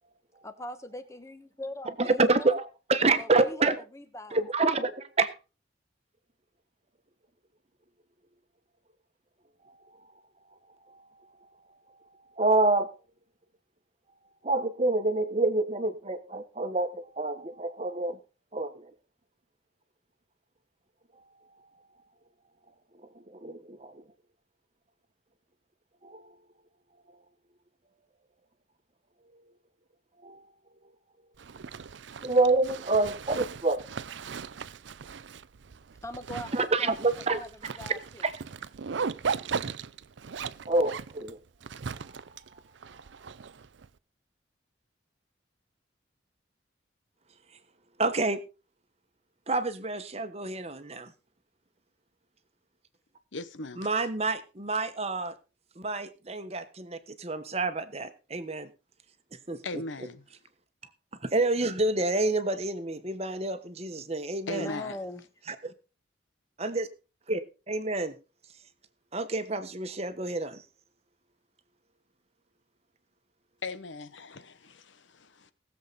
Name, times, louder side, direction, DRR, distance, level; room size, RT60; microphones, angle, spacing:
voice 1, 0.4-2.5 3.2-4.5 36.0-36.9 37.3-38.2 64.5-65.2, left 1 dB, 15° left, 1.2 m, -41 dB
voice 2, 2.0-3.7 4.3-5.3 10.9-11.0 12.4-12.9 14.4-18.2 18.5-18.9 23.4-23.9 26.0-26.2 30.2-30.4 32.2-33.8 36.5-37.4 37.9-38.3 40.7-41.4 48.0-48.4 49.5-51.1 53.8-55.3 55.8-58.7 59.5-59.6 61.3-64.7 65.5-65.7 66.6-66.9 67.3-67.4 67.7-68.1 69.1-70.6, right 2 dB, 35° right, 1.2 m, -28 dB
Zipper (clothing), 31.4-43.9, right 5 dB, 70° right, 0.5 m, -38 dB
voice 3, 53.3-53.9 59.6-60.2 64.5-65.0 73.6-75.5, left 2 dB, 80° left, 1.1 m, -38 dB
19.5 x 7.5 x 4.1 m
head